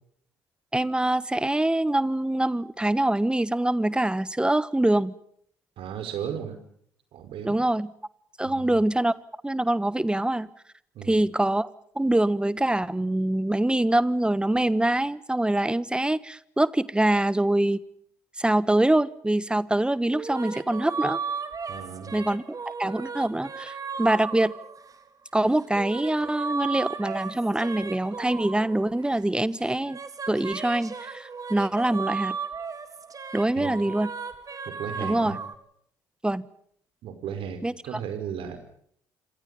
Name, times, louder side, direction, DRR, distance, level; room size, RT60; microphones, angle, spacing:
voice 1, 0.7-5.1 7.4-7.9 8.4-9.1 9.4-10.5 11.1-11.7 11.9-17.8 18.4-21.2 22.1-24.5 25.3-30.0 30.3-32.4 33.3-34.1 35.0-35.4 36.2-36.5 37.6-37.7, right 1 dB, 10° right, 19 dB, 1.3 m, -24 dB
voice 2, 5.8-6.6 7.1-7.6 8.4-8.7 10.9-11.2 21.7-22.1 33.6-33.7 34.6-35.4 37.0-38.6, right 8 dB, 60° right, 8 dB, 5.0 m, -35 dB
sound 1, 20.1-25.1 25.6-29.3 29.6-35.5, right 5 dB, 35° right, 3.4 m, -35 dB
27.0 x 26.0 x 5.4 m, 0.66 s
figure-of-eight pair, 50°, 10 cm